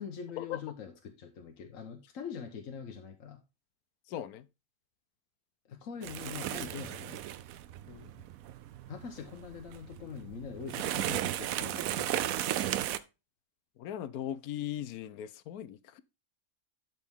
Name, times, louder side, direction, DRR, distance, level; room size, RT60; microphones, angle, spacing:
voice 1, 0.0-3.4 5.7-7.2 8.9-12.6, left 6 dB, 65° left, 1.3 m, -43 dB
voice 2, 4.1-4.5 7.9-8.1 13.8-16.0, left 11 dB, 90° left, 1.1 m, -39 dB
sound 1, 6.0-13.0, right 12 dB, 75° right, 1.0 m, -35 dB
11.5 x 4.2 x 3.5 m
omnidirectional pair, 1.5 m